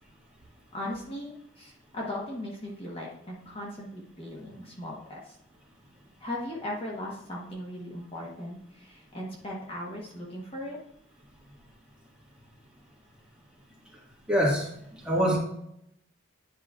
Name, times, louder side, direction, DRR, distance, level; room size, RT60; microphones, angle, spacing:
voice 1, 0.7-5.4 6.2-10.8, left 1 dB, 25° left, -3 dB, 1.1 m, -38 dB
voice 2, 14.3-15.4, equal, 5° right, -4 dB, 1.5 m, -25 dB
10.0 x 5.1 x 2.4 m, 0.76 s
head